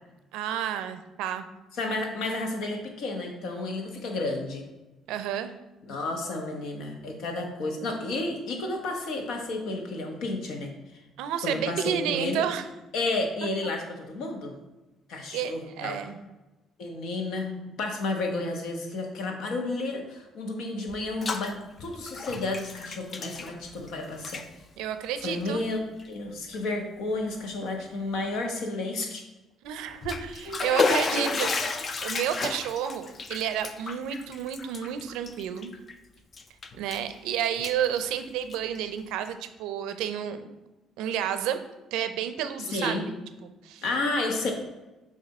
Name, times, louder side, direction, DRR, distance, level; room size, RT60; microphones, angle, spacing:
voice 1, 0.3-1.4 5.1-5.5 11.2-12.6 15.3-16.2 24.8-25.6 29.6-31.5 32.0-35.7 36.8-40.5 41.0-41.6 41.9-43.0 43.4-43.8, right 9 dB, 85° right, 10 dB, 0.5 m, -30 dB
voice 2, 1.8-4.6 5.9-10.7 11.4-12.4 12.9-14.5 15.1-16.0 16.8-17.5 17.8-24.4 25.2-25.8 26.1-29.2 30.5-31.4 42.6-43.1 43.8-44.5, left 2 dB, 75° left, 2 dB, 1.2 m, -31 dB
Bathtub (filling or washing), 20.9-21.5 21.8-23.9 24.2-24.5 25.2-25.4 26.0-26.1 26.5-26.6 29.8-35.9 36.3-37.1 37.4-38.8, left 4 dB, 40° left, 0.5 m, -32 dB
6.6 x 2.7 x 5.3 m, 1.1 s
cardioid pair, 95°, 0 cm